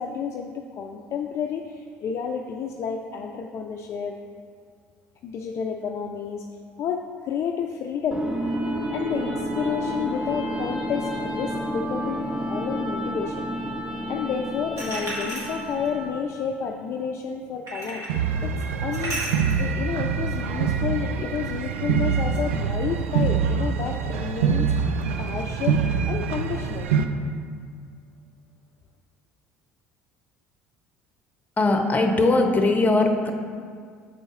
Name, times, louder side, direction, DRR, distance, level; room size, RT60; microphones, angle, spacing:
voice 1, 0.0-4.2 5.2-6.4 6.8-8.3 8.9-13.4 14.1-18.1 18.4-18.5 18.8-19.2 19.6-24.7 25.2-25.8 26.1-26.9, left 7 dB, 45° left, 3 dB, 0.4 m, -30 dB
sound 1, 8.1-16.3, equal, 15° right, 1.0 m, -30 dB
sound 2, 14.8-15.9 17.7-18.2 18.9-19.6, right 1 dB, 50° right, 1.6 m, -33 dB
sound 3, 18.1-27.1, right 6 dB, 75° right, 0.3 m, -25 dB
voice 2, 31.6-33.3, left 2 dB, 25° left, 4 dB, 0.8 m, -20 dB
7.3 x 4.0 x 3.6 m, 2.1 s
figure-of-eight pair, 60°, 7 cm